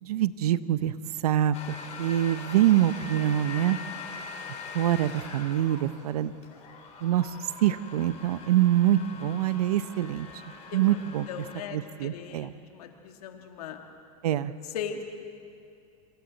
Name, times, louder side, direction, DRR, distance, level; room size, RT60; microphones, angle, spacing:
voice 1, 0.0-0.9 1.2-3.8 4.7-6.3 7.0-7.3 7.6-10.3 10.7-11.3 11.7-12.5 14.2-14.5, right 12 dB, 80° right, 15 dB, 0.8 m, -25 dB
sound 1, 1.5-11.6, left 5 dB, 35° left, 3.7 m, -42 dB
voice 2, 11.3-13.8 14.3-14.4 14.7-15.0, left 8 dB, 80° left, 4 dB, 2.1 m, -39 dB
27.0 x 26.0 x 4.1 m, 2.5 s
hypercardioid pair, 110°, 19 cm